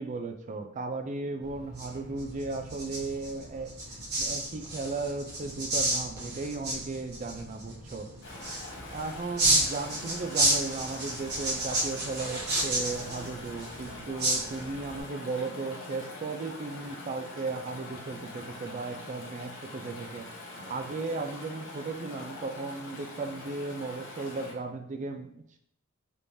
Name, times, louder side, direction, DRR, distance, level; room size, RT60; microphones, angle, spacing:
voice 1, 0.0-3.7 4.2-8.1 8.9-25.3, right 3 dB, 35° right, 5 dB, 0.4 m, -36 dB
sound 1, 1.4-15.0, right 1 dB, 50° right, 1.0 m, -32 dB
Chatter / Stream, 8.2-24.5, left 2 dB, 65° left, 0.8 m, -44 dB
3.5 x 3.0 x 2.6 m, 0.69 s
head